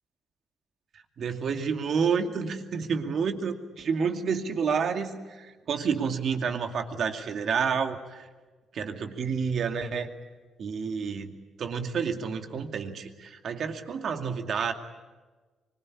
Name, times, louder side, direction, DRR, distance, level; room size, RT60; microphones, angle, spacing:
voice 1, 1.2-8.3 8.7-10.1 10.6-11.3 11.6-14.7, right 6 dB, 60° right, 6 dB, 2.3 m, -29 dB
24.5 x 21.0 x 9.8 m, 1.3 s
cardioid pair, 90°, 0 cm